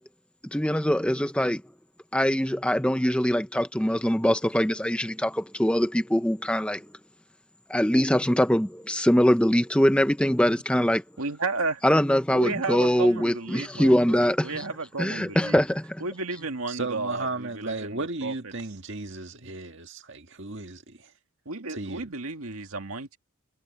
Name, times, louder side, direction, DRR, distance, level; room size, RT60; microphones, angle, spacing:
voice 1, 0.5-1.6 2.1-6.8 7.7-11.0 11.8-14.6 15.0-16.0, equal, 5° left, 0.8 m, -23 dB
voice 2, 11.2-11.8 12.3-15.6 16.0-18.3 21.5-23.2, right 3 dB, 75° right, 2.1 m, -33 dB
voice 3, 16.4-21.1 21.7-22.2, right 3 dB, 55° right, 2.0 m, -35 dB
head